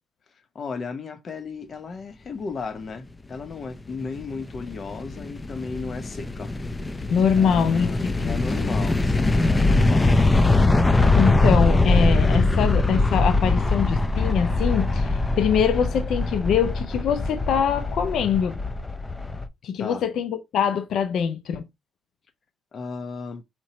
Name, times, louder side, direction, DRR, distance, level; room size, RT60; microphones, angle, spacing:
voice 1, 0.5-6.5 7.4-10.1 19.8-20.0 22.7-23.4, left 4 dB, 45° left, 0.8 m, -34 dB
sound 1, 4.0-19.5, left 2 dB, 20° left, 0.5 m, -22 dB
voice 2, 7.1-8.4 11.2-18.6 19.6-21.6, left 7 dB, 70° left, 0.4 m, -23 dB
4.4 x 2.9 x 4.0 m
cardioid pair, 90°, 0 cm